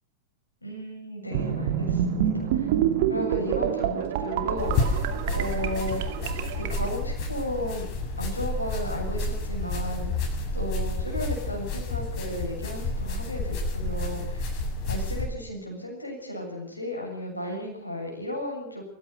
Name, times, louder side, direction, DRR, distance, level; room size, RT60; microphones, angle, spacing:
voice 1, 0.6-2.7 3.1-5.1 5.3-6.0 6.5-7.9 8.2-14.6 14.9-18.8, left 1 dB, 85° left, 0 dB, 7.4 m, -34 dB
sound 1, 1.3-6.9, right 10 dB, 50° right, 2.6 m, -27 dB
sound 2, 4.6-15.3, left 2 dB, 40° left, 7.2 m, -30 dB
26.0 x 15.5 x 6.7 m, 0.73 s
figure-of-eight pair, 90°, 0 cm